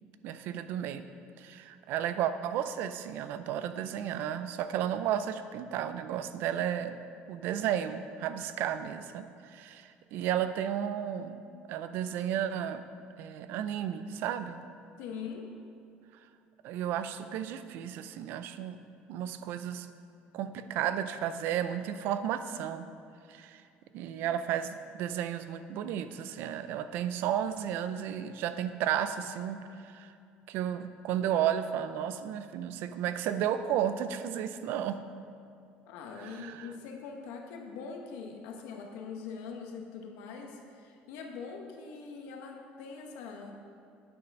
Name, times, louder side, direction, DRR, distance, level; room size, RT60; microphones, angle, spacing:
voice 1, 0.2-1.0 1.4-7.0 7.3-11.4 11.7-12.8 13.2-14.6 16.6-18.8 19.1-19.9 20.3-22.9 23.3-23.6 23.9-30.1 30.5-35.0 36.2-36.7, right 10 dB, 65° right, 11 dB, 0.5 m, -33 dB
voice 2, 15.0-15.5 35.9-43.6, left 5 dB, 90° left, 2 dB, 1.2 m, -42 dB
9.5 x 5.8 x 5.4 m, 2.4 s
cardioid pair, 145°, 4 cm